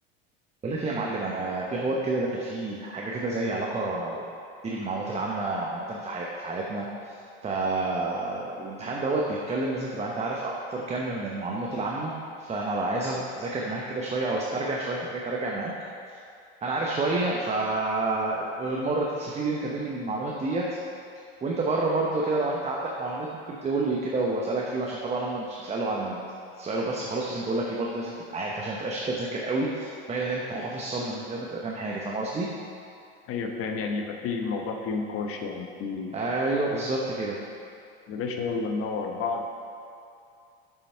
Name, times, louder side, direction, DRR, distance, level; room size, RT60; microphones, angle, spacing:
voice 1, 0.6-4.2 4.6-7.2 7.4-15.7 16.6-20.8 21.4-26.2 26.5-32.5 36.1-37.4, right 2 dB, 20° right, -2 dB, 0.8 m, -29 dB
voice 2, 33.3-36.2 38.1-39.4, left 4 dB, 45° left, 3 dB, 1.0 m, -31 dB
7.0 x 5.7 x 4.5 m, 2.5 s
hypercardioid pair, 95°, 30 cm